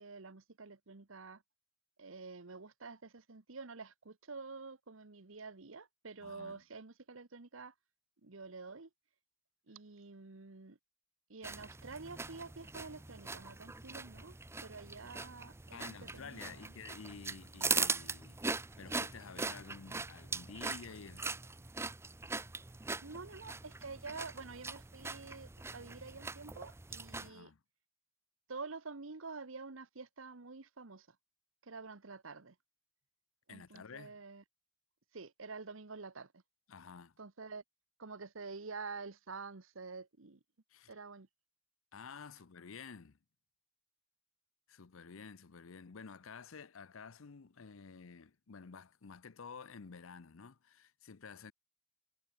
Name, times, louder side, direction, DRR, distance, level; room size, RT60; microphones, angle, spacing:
voice 1, 0.0-1.4 2.0-7.7 8.2-8.9 9.7-10.8 11.3-14.4 14.6-16.7 23.0-27.5 28.5-31.1 31.6-32.5 33.5-34.4 35.1-36.4 37.2-37.6 38.0-40.4 40.9-41.3, right 4 dB, 70° right, 1.2 m, -48 dB
voice 2, 6.2-6.6 15.7-21.3 27.2-27.6 33.5-34.2 36.7-37.1 40.7-40.9 41.9-43.2 44.7-51.5, left 5 dB, 70° left, 0.7 m, -51 dB
sound 1, 11.4-27.3, right 4 dB, 10° right, 0.6 m, -41 dB
head